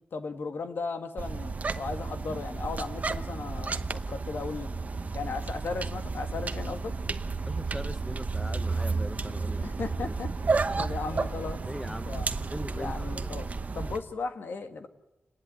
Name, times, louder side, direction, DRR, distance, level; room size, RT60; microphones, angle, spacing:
voice 1, 0.1-4.7 5.1-6.9 9.6-10.3 10.8-11.6 12.1-12.3 12.7-13.5 13.7-14.9, left 4 dB, 65° left, 7 dB, 1.7 m, -36 dB
sound 1, 1.2-14.0, right 4 dB, 40° right, 1.0 m, -32 dB
voice 2, 7.5-10.1 10.7-10.9 11.7-13.4, equal, ahead, 11 dB, 0.8 m, -40 dB
29.5 x 11.0 x 9.6 m, 1.0 s
wide cardioid pair, 100°, 4 cm